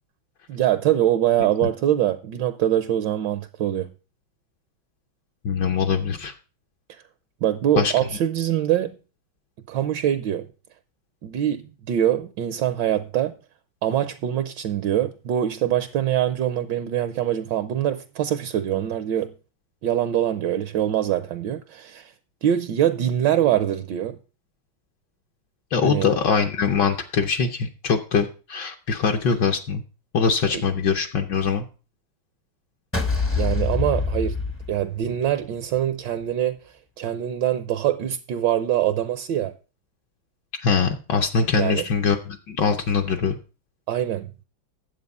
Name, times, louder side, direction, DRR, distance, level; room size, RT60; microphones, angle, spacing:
voice 1, 0.5-3.9 7.4-8.9 9.7-10.5 11.2-13.3 13.8-19.3 19.8-22.1 22.4-24.2 25.8-26.1 30.5-30.6 33.4-34.4 34.7-36.6 37.0-39.5 41.6-41.8 43.9-44.3, right 11 dB, 70° right, 1.2 m, -23 dB
voice 2, 5.4-6.3 7.8-7.9 25.7-29.8 30.1-31.6 40.6-43.4, left 5 dB, 65° left, 1.4 m, -22 dB
sound 1, 32.9-35.3, left 4 dB, 15° left, 0.5 m, -25 dB
9.6 x 7.7 x 5.3 m
omnidirectional pair, 2.2 m